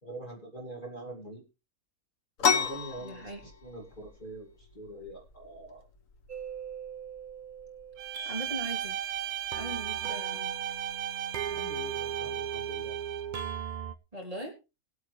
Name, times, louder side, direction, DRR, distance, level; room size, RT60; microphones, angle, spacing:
voice 1, 0.0-1.4 2.4-5.9 11.5-13.0, right 1 dB, 35° left, 1 dB, 2.9 m, -44 dB
sound 1, 2.4-11.8, left 6 dB, 60° left, 1.4 m, -36 dB
voice 2, 3.0-3.4 8.2-9.0 9.5-10.6 14.1-14.5, right 1 dB, 25° right, 0 dB, 3.2 m, -39 dB
sound 2, 6.3-14.0, right 8 dB, 45° right, 0.7 m, -39 dB
Bowed string instrument, 8.0-13.3, right 10 dB, 75° right, 1.3 m, -36 dB
20.5 x 8.6 x 3.3 m, 0.28 s
omnidirectional pair, 1.6 m